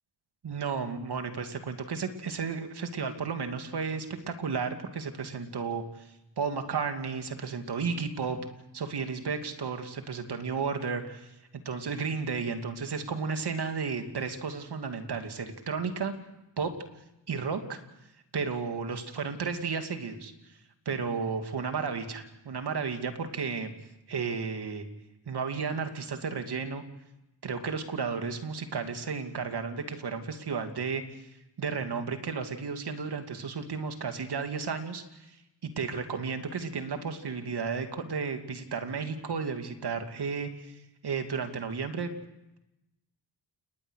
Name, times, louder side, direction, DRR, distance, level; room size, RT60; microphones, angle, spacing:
voice 1, 0.4-6.1 6.4-8.4 8.7-16.1 16.6-16.7 17.3-17.8 18.3-20.6 20.8-23.7 24.1-24.8 25.3-26.8 27.4-31.3 31.6-35.3 35.6-40.7 41.0-42.2, right 5 dB, 70° right, 6 dB, 2.7 m, -33 dB
29.5 x 20.0 x 6.6 m, 0.93 s
cardioid pair, 75°, 41 cm